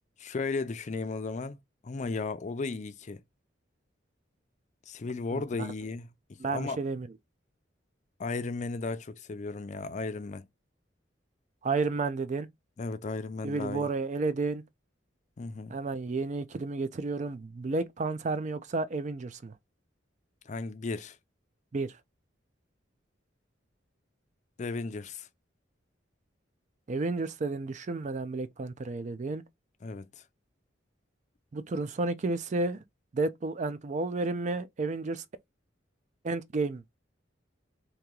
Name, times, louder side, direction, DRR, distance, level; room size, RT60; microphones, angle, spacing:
voice 1, 0.2-1.6 1.8-3.2 4.9-6.1 6.5-6.8 8.2-10.4 12.8-13.9 15.4-15.8 20.5-21.2 24.6-25.3 29.8-30.0, left 3 dB, 40° left, 0.4 m, -35 dB
voice 2, 5.3-5.7 6.4-7.1 11.6-12.5 13.4-14.6 15.7-19.5 21.7-21.9 26.9-29.4 31.5-32.8 33.1-35.2 36.2-37.0, right 3 dB, 40° right, 0.4 m, -31 dB
3.0 x 2.8 x 3.6 m
head